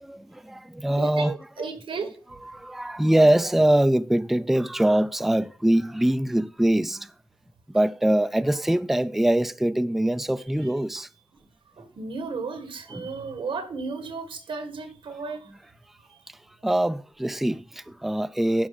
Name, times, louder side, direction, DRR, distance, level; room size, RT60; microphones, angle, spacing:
voice 1, 0.0-1.7 2.5-7.1 7.7-11.1 12.9-13.1 16.6-18.7, right 1 dB, 5° right, 0.3 m, -23 dB
voice 2, 1.0-2.1 10.9-11.0 11.8-15.5, right 4 dB, 85° right, 1.8 m, -34 dB
11.0 x 4.7 x 5.8 m
wide cardioid pair, 120°, 9 cm